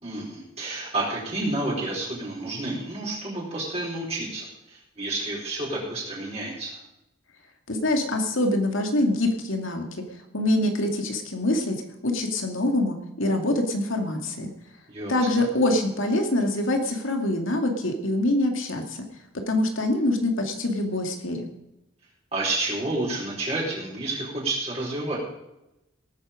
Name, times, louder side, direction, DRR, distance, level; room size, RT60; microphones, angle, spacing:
voice 1, 0.0-6.8 14.9-15.4 22.3-25.2, right 2 dB, 30° right, -5 dB, 4.3 m, -30 dB
voice 2, 7.7-9.8 10.3-11.8 12.0-14.5 15.1-18.8 19.5-21.5, left 1 dB, 70° left, 3 dB, 2.5 m, -24 dB
18.5 x 9.0 x 5.2 m, 0.91 s
head